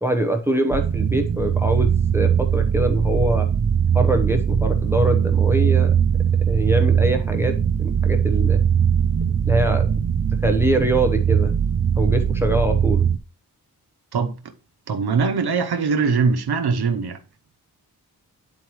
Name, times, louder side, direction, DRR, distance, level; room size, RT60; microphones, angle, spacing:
voice 1, 0.0-3.5 3.9-5.9 6.5-7.5 7.8-8.6 9.5-9.9 10.3-11.5 12.0-13.1, right 1 dB, 5° right, 0.8 m, -23 dB
Dark Ambient Sound, 0.7-13.2, right 8 dB, 40° right, 0.5 m, -20 dB
voice 2, 14.9-17.2, right 5 dB, 90° right, 0.9 m, -21 dB
9.6 x 4.6 x 3.1 m
wide cardioid pair, 100°, 37 cm